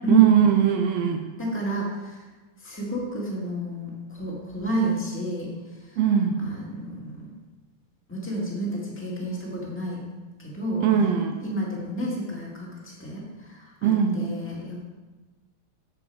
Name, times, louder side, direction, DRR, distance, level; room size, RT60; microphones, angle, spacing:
voice 1, 0.1-1.2 6.0-6.4 10.8-11.4 13.8-14.2, right 8 dB, 80° right, 4 dB, 1.5 m, -20 dB
voice 2, 1.4-2.2 2.6-5.5 5.9-6.0 6.4-7.3 8.1-10.0 10.4-10.8 11.4-14.9, right 1 dB, 5° left, -4 dB, 1.2 m, -30 dB
7.9 x 7.6 x 4.7 m, 1.2 s
omnidirectional pair, 3.4 m